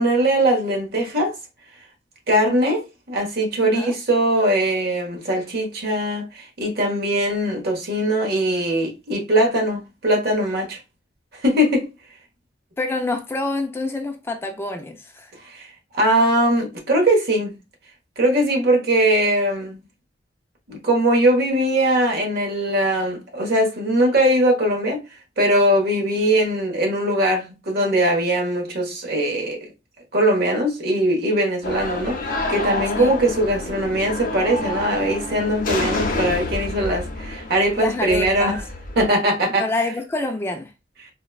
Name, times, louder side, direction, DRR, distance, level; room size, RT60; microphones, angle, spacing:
voice 1, 0.0-1.3 2.3-10.8 11.4-11.9 15.4-15.6 15.9-17.6 18.2-19.8 20.7-25.0 25.4-29.6 30.1-38.6 39.0-39.7, right 1 dB, 60° right, 1.1 m, -21 dB
voice 2, 3.6-3.9 12.8-15.3 33.0-33.1 37.8-38.6 39.6-40.7, left 2 dB, 15° left, 0.3 m, -27 dB
sound 1, 31.6-39.1, left 2 dB, 50° left, 0.6 m, -28 dB
4.0 x 2.2 x 2.3 m
head